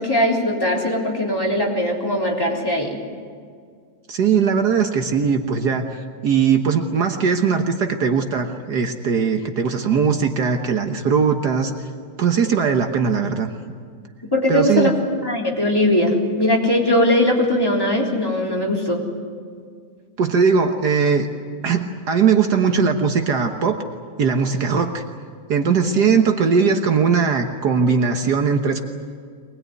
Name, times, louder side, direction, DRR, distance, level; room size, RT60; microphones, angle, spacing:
voice 1, 0.0-3.0 14.3-14.9 15.2-19.0, left 1 dB, 10° left, -2 dB, 3.8 m, -20 dB
voice 2, 4.1-11.7 12.2-13.5 14.5-14.9 20.2-21.3 21.6-23.8 24.2-25.0 25.5-28.8, right 6 dB, 65° right, 5 dB, 1.7 m, -19 dB
23.5 x 20.5 x 9.5 m, 2.1 s
omnidirectional pair, 2.0 m